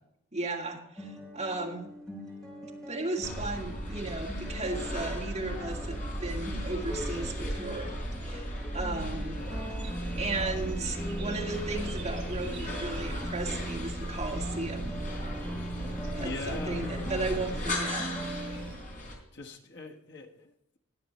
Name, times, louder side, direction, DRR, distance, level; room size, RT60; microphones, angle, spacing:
voice 1, 0.3-1.9 2.9-7.9 8.2-9.4 10.1-14.9 16.2-18.1, right 3 dB, 30° right, -1 dB, 2.3 m, -35 dB
sound 1, 1.0-18.8, right 1 dB, 5° left, 4.0 m, -42 dB
sound 2, 3.2-19.2, equal, 40° left, 3.8 m, -36 dB
sound 3, 9.4-18.7, right 2 dB, 55° right, 1.3 m, -48 dB
voice 2, 16.2-16.9 17.3-17.6 19.3-20.8, left 2 dB, 55° left, 2 dB, 1.4 m, -42 dB
20.5 x 7.8 x 3.1 m, 0.80 s
head